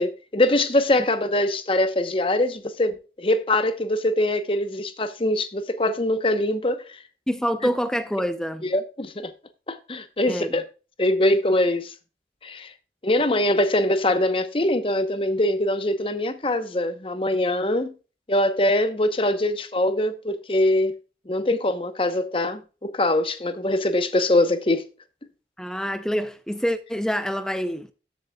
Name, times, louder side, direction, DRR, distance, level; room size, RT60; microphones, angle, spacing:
voice 1, 0.0-6.8 8.6-9.3 9.7-10.6 11.0-11.9 12.4-12.7 13.0-17.9 18.3-21.0 21.3-24.8, left 1 dB, 30° left, 0.9 m, -23 dB
voice 2, 7.3-8.7 10.3-10.6 25.6-27.9, equal, 5° left, 0.5 m, -26 dB
13.5 x 7.8 x 2.3 m
head